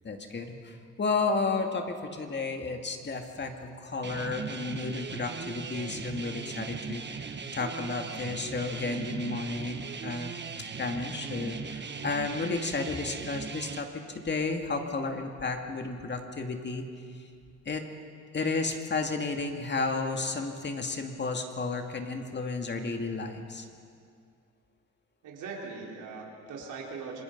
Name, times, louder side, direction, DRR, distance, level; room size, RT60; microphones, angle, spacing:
voice 1, 0.0-10.3 10.8-13.9 14.1-16.8 17.7-17.8 18.3-23.6, left 3 dB, 35° left, 4 dB, 2.3 m, -32 dB
sound 1, 4.0-13.8, right 5 dB, 35° right, 1.4 m, -39 dB
voice 2, 25.2-27.2, right 4 dB, 85° right, -1 dB, 4.1 m, -40 dB
26.5 x 20.5 x 5.4 m, 2.3 s
cardioid pair, 90°, 30 cm